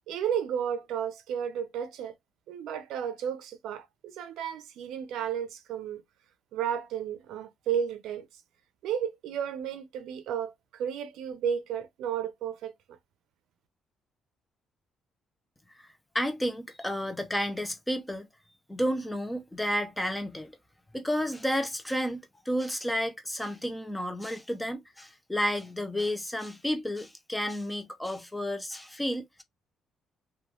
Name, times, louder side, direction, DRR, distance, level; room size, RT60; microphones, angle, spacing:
voice 1, 0.1-2.1 2.5-6.0 6.5-8.3 8.8-13.0, right 8 dB, 85° right, 0.5 m, -33 dB
voice 2, 15.8-18.3 18.7-20.5 20.9-29.4, equal, 5° left, 0.5 m, -31 dB
3.0 x 2.3 x 2.3 m
cardioid pair, 135°, 0 cm